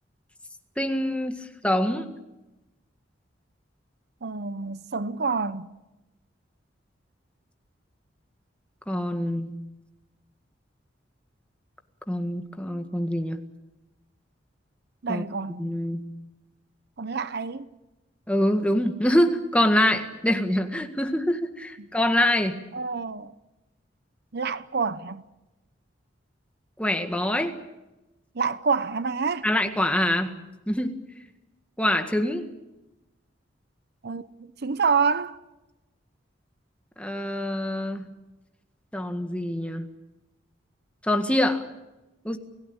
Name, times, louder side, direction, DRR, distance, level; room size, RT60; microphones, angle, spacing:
voice 1, 0.8-2.1 8.9-9.5 12.1-13.4 15.1-15.2 15.6-16.0 18.3-22.6 26.8-27.6 29.4-30.3 30.7-31.0 31.8-32.5 37.0-38.1 38.9-39.9 41.0-41.6 42.2-42.4, left 1 dB, 5° left, 1.8 m, -25 dB
voice 2, 4.2-5.7 15.0-15.8 17.0-17.7 21.8-21.9 22.7-23.3 24.3-25.2 28.3-29.5 34.0-34.3 34.6-35.4, right 5 dB, 60° right, 0.8 m, -27 dB
29.5 x 17.0 x 8.8 m
head